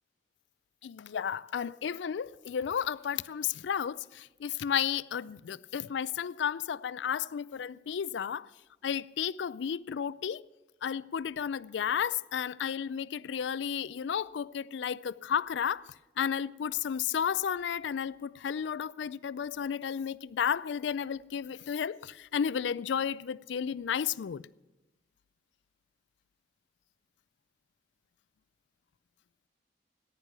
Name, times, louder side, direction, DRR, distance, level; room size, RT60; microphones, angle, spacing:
voice 1, 0.8-8.5 8.8-10.4 10.8-15.8 16.2-24.4, left 8 dB, 85° left, 0.4 m, -33 dB
14.5 x 10.5 x 6.7 m
head